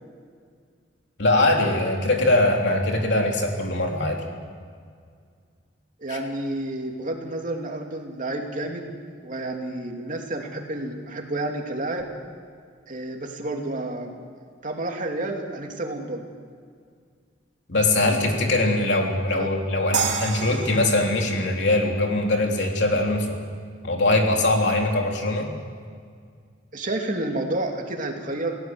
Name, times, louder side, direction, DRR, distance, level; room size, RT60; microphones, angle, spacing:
voice 1, 1.2-4.2 6.1-6.2 17.7-23.4 23.8-25.5, left 2 dB, 65° left, 1 dB, 3.5 m, -22 dB
voice 2, 6.0-8.9 9.2-12.1 12.9-14.2 14.6-16.2 19.3-19.5 26.7-28.7, right 2 dB, 45° right, 2 dB, 2.8 m, -30 dB
sound 1, 19.9-23.0, right 5 dB, 75° right, 3.2 m, -31 dB
28.5 x 17.5 x 7.9 m, 2.1 s
head